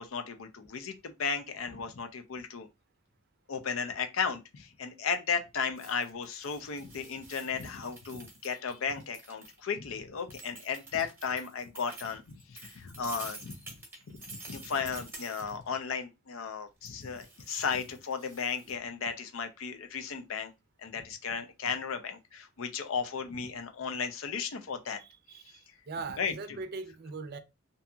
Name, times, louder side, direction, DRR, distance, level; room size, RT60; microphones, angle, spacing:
voice 1, 0.0-2.7 3.5-13.7 14.3-20.5 20.8-25.0 26.2-26.6, left 6 dB, 75° left, 0.5 m, -35 dB
sound 1, 5.8-9.6 10.3-15.7 16.8-18.8, right 2 dB, 10° right, 0.9 m, -49 dB
voice 2, 25.0-27.4, right 4 dB, 50° right, 0.5 m, -41 dB
2.7 x 2.6 x 2.3 m
head